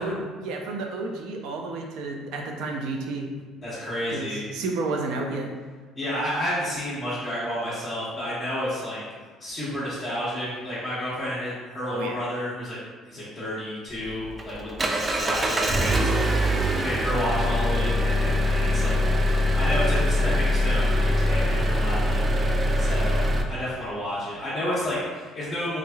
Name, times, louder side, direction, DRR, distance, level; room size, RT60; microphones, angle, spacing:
voice 1, 0.0-3.3 4.1-5.5 11.9-12.2, right 3 dB, 75° right, 2 dB, 0.5 m, -31 dB
voice 2, 3.6-4.4 5.9-9.0 9.4-12.8 13.1-22.5 22.8-25.8, equal, 15° left, -12 dB, 1.2 m, -31 dB
Engine, 13.9-23.4, equal, 20° right, 0.3 m, -23 dB
3.6 x 3.1 x 2.3 m, 1.4 s
cardioid pair, 125°, 0 cm